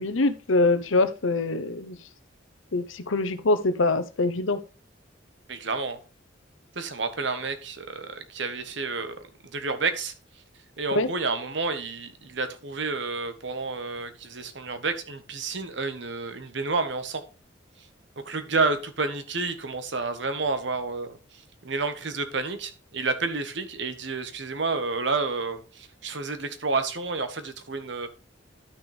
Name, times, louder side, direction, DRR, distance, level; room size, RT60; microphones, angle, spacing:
voice 1, 0.0-2.0 2.7-4.6 10.9-11.1, left 2 dB, 85° left, 12 dB, 0.8 m, -24 dB
voice 2, 5.5-6.0 6.7-9.2 9.5-10.1 10.8-17.2 18.2-21.2 21.6-28.1, right 3 dB, 65° right, 9 dB, 1.2 m, -30 dB
11.5 x 6.2 x 3.4 m, 0.32 s
head